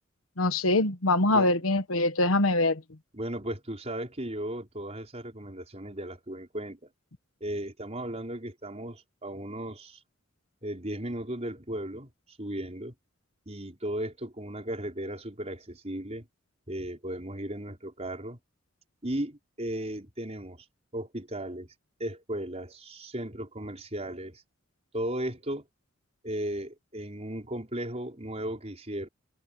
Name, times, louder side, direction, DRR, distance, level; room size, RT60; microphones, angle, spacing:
voice 1, 0.4-2.8, left 2 dB, 90° left, 1.3 m, -24 dB
voice 2, 3.1-6.8 7.4-10.0 10.6-12.1 12.4-13.0 13.5-16.3 16.7-18.4 19.0-20.7 20.9-21.7 22.0-24.4 24.9-25.6 26.2-29.1, right 1 dB, 30° right, 5.2 m, -36 dB
head